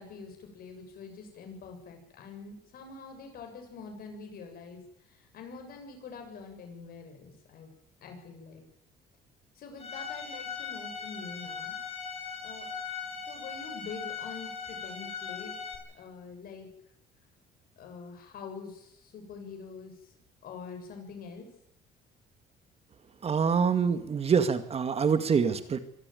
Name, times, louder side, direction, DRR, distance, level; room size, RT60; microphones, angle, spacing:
voice 1, 0.0-4.8 5.1-7.7 8.0-8.6 9.6-11.8 12.4-12.7 13.3-15.5 15.9-16.7 17.8-19.9 20.4-21.5, left 5 dB, 60° left, 4 dB, 7.5 m, -45 dB
Bowed string instrument, 9.8-15.8, left 6 dB, 35° left, 6.3 m, -39 dB
voice 2, 23.2-25.8, right 6 dB, 35° right, 11 dB, 2.1 m, -25 dB
24.5 x 14.0 x 9.4 m, 0.75 s
cardioid pair, 110°, 17 cm